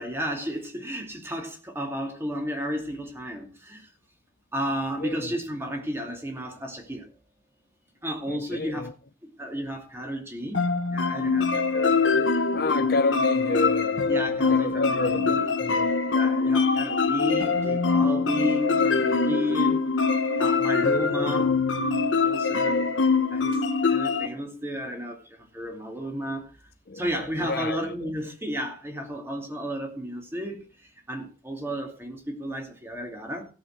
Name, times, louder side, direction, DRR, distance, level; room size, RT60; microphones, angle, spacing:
voice 1, 0.0-3.8 4.5-7.0 8.0-8.9 9.4-10.6 10.9-12.3 14.1-15.5 16.1-19.8 20.4-21.5 22.2-22.9 23.3-23.6 23.8-25.2 25.5-26.4 27.0-30.7 31.1-33.5, equal, 15° right, 2.6 m, -32 dB
voice 2, 5.0-5.3 8.3-8.9 12.5-14.1 14.5-15.9 26.9-27.1 27.4-28.1, left 3 dB, 55° left, 0.7 m, -30 dB
sound 1, 10.5-24.3, left 4 dB, 90° left, 1.2 m, -23 dB
16.5 x 7.3 x 4.4 m
head